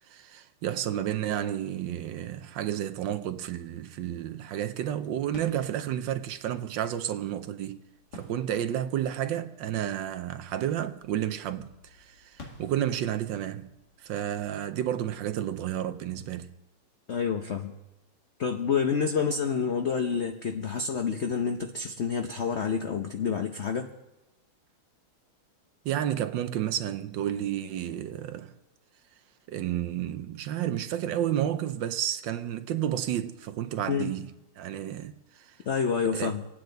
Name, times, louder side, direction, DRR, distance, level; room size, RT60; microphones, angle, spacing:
voice 1, 0.1-7.8 8.1-13.7 14.0-16.5 25.8-28.5 29.5-35.1 35.5-35.6 36.2-36.4, right 11 dB, 70° right, 1.2 m, -31 dB
sound 1, 5.3-15.8, left 2 dB, 55° left, 2.6 m, -54 dB
voice 2, 17.1-17.7 18.4-23.9 33.9-34.1 35.7-36.5, left 6 dB, 85° left, 0.6 m, -28 dB
27.0 x 9.2 x 3.9 m
omnidirectional pair, 2.3 m